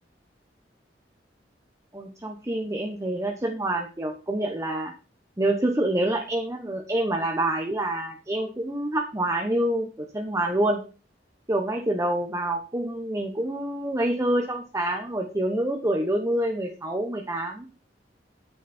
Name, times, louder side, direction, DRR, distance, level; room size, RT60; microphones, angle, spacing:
voice 1, 1.9-4.9 5.4-10.8 11.5-17.7, right 1 dB, 20° right, 3 dB, 1.1 m, -27 dB
9.1 x 8.3 x 4.3 m, 0.34 s
head